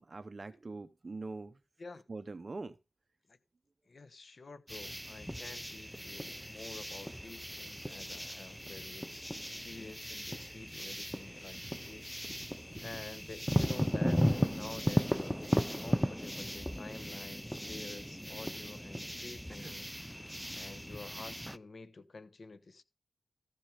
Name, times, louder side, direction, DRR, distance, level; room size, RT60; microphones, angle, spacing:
voice 1, 0.0-1.6 2.1-2.8 19.6-19.7, right 3 dB, 45° right, 0.7 m, -43 dB
voice 2, 3.9-9.3 9.6-12.2 12.8-19.9 20.5-22.8, left 3 dB, 60° left, 1.0 m, -49 dB
sound 1, 4.7-21.6, equal, ahead, 0.5 m, -36 dB
14.0 x 6.0 x 5.0 m
cardioid pair, 60°, 0 cm